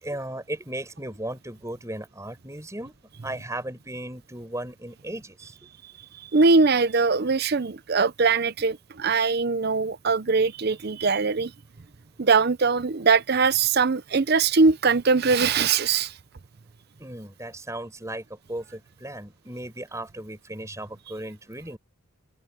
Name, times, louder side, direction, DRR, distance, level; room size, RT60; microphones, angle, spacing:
voice 1, 0.0-3.0 3.2-5.5 17.0-21.8, right 1 dB, 15° right, 5.5 m, -36 dB
voice 2, 5.8-11.5 12.2-16.2, right 4 dB, 45° right, 0.6 m, -22 dB
head